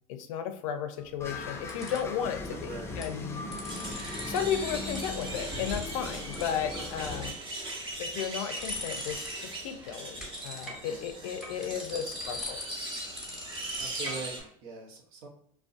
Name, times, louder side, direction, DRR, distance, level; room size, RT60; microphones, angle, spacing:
voice 1, 0.1-3.4 4.2-7.4 8.0-12.6, left 8 dB, 85° left, 7 dB, 0.5 m, -34 dB
sound 1, 1.0-2.2 2.8-3.1 3.4-4.4 4.7-6.0 6.3-6.4 6.8-7.4 7.9-9.6 9.8-14.5, left 2 dB, ahead, 0.9 m, -42 dB
car start, 1.2-7.3, left 3 dB, 15° left, 0.4 m, -39 dB
voice 2, 2.5-3.0 6.8-6.9 11.7-12.0 13.8-15.3, right 4 dB, 70° right, 2 dB, 0.7 m, -43 dB
sound 2, 3.6-14.4, right 1 dB, 30° right, 0.8 m, -39 dB
2.5 x 2.1 x 2.4 m, 0.65 s
supercardioid pair, 105°, 17 cm